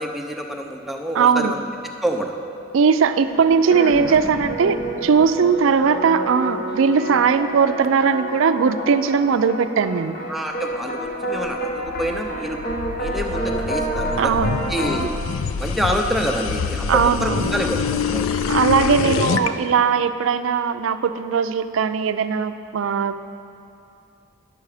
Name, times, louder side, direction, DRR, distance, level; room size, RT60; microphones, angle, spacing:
voice 1, 0.0-1.6 2.0-2.3 10.3-12.6 12.9-15.1 15.6-18.3, equal, ahead, 1 dB, 0.5 m, -27 dB
voice 2, 1.1-1.5 2.7-10.1 14.2-14.6 16.9-17.5 18.5-23.3, right 6 dB, 70° right, 11 dB, 0.4 m, -19 dB
sound 1, 3.0-15.1, right 1 dB, 45° left, 0.9 m, -29 dB
sound 2, 11.4-19.5, left 5 dB, 80° left, 0.4 m, -26 dB
10.5 x 6.8 x 4.8 m, 2.7 s
head